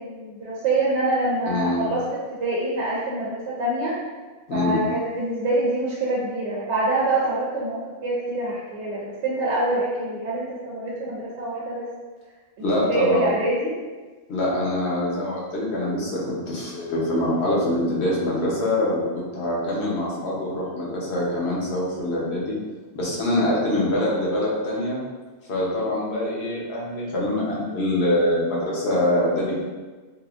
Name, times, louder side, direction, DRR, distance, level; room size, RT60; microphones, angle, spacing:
voice 1, 0.0-2.0 2.4-3.9 4.5-11.9 12.9-13.7 23.3-23.5, right 2 dB, 85° right, -5 dB, 0.9 m, -25 dB
voice 2, 1.5-1.9 4.5-4.8 12.6-13.3 14.3-22.5 22.9-25.0 25.5-29.6, left 1 dB, 70° left, -5 dB, 1.0 m, -24 dB
3.4 x 2.5 x 2.4 m, 1.3 s
omnidirectional pair, 1.1 m